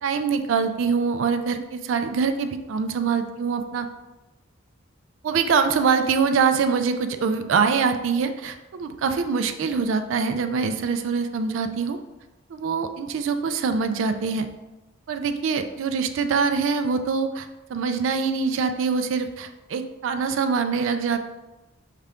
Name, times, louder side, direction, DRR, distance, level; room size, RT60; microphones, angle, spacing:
voice 1, 0.0-3.9 5.2-12.0 12.5-14.5 15.1-21.2, right 5 dB, 75° right, 7 dB, 0.3 m, -24 dB
5.5 x 2.5 x 3.4 m, 1.0 s
head